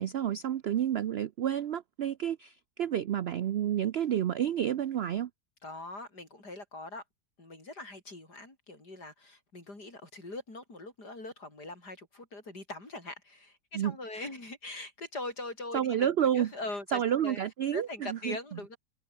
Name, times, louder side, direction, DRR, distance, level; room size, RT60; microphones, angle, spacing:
voice 1, 0.0-5.3 13.7-14.3 15.7-16.5 16.9-18.6, right 10 dB, 75° right, 0.5 m, -30 dB
voice 2, 5.6-7.0 7.4-16.1 16.3-17.4 17.7-18.8, left 2 dB, 85° left, 7.2 m, -42 dB
omnidirectional pair, 1.7 m